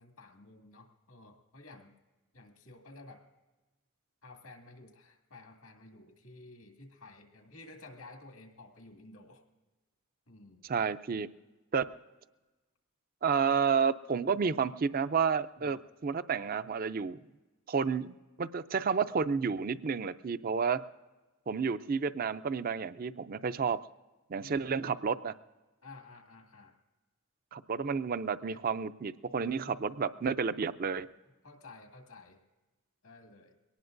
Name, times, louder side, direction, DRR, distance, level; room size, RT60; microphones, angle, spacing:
voice 1, 0.0-1.9 2.3-3.2 4.2-9.4 10.3-10.7 15.6-15.8 24.4-24.9 25.8-26.8 28.5-28.6 29.6-29.7 31.4-32.4 33.0-33.6, left 2 dB, 85° left, 3 dB, 2.1 m, -53 dB
voice 2, 10.6-11.3 11.7-11.9 13.2-17.2 17.7-20.8 21.5-23.8 24.3-25.3 27.5-31.1, right 6 dB, 40° right, 13 dB, 0.4 m, -31 dB
23.0 x 18.5 x 2.6 m, 1.2 s
head